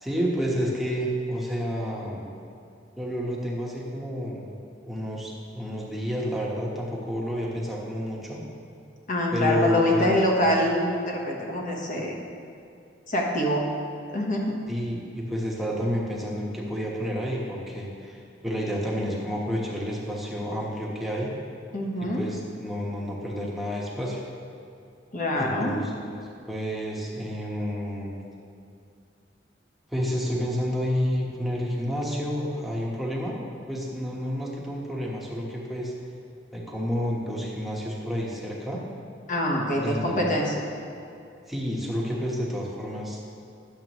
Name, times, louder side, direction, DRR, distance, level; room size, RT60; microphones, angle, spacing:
voice 1, 0.0-2.3 3.0-4.5 4.8-8.4 9.3-10.2 14.7-21.3 22.0-24.2 25.3-26.2 26.5-28.2 29.9-35.9 36.5-38.8 39.8-40.3 41.5-43.2, equal, ahead, -4 dB, 1.2 m, -30 dB
voice 2, 9.1-12.2 13.1-13.6 14.1-14.6 21.7-22.2 25.1-25.8 39.3-40.6, left 1 dB, 45° left, -1 dB, 1.2 m, -25 dB
10.5 x 7.5 x 3.1 m, 2.5 s
head